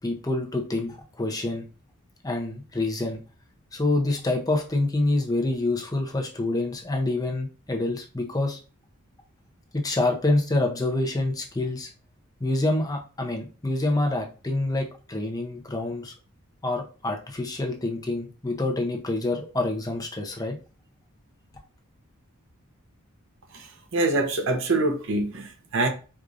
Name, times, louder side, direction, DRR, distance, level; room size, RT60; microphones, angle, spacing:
voice 1, 0.0-1.6 2.2-3.2 3.7-8.6 9.7-11.9 12.4-16.1 16.6-20.5, left 2 dB, 15° left, 0.6 m, -27 dB
voice 2, 23.9-25.9, right 2 dB, 65° right, 0.7 m, -24 dB
4.7 x 2.5 x 2.5 m
head